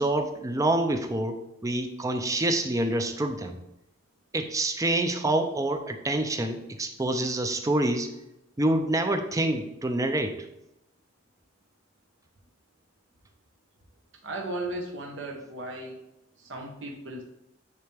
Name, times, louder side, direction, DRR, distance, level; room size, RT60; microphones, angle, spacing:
voice 1, 0.0-3.6 4.3-8.1 8.6-10.3, right 1 dB, 15° right, 6 dB, 0.5 m, -27 dB
voice 2, 14.2-16.0 16.4-17.2, right 2 dB, 70° right, 0 dB, 1.1 m, -36 dB
9.6 x 3.4 x 3.4 m, 0.88 s
head